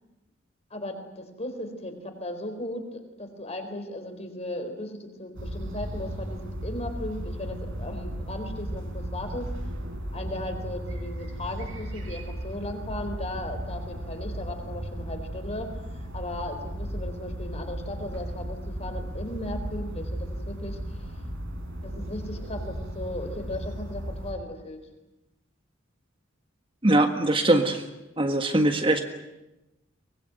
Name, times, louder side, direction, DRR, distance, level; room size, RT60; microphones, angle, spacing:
voice 1, 0.7-9.5 10.1-21.1 21.8-24.8, left 1 dB, 35° left, 6 dB, 4.2 m, -37 dB
sound 1, 5.3-24.3, equal, 75° right, 4.8 m, -35 dB
voice 2, 26.8-27.8 28.2-29.0, right 1 dB, 25° right, 6 dB, 1.6 m, -21 dB
24.0 x 20.5 x 9.4 m, 0.97 s
head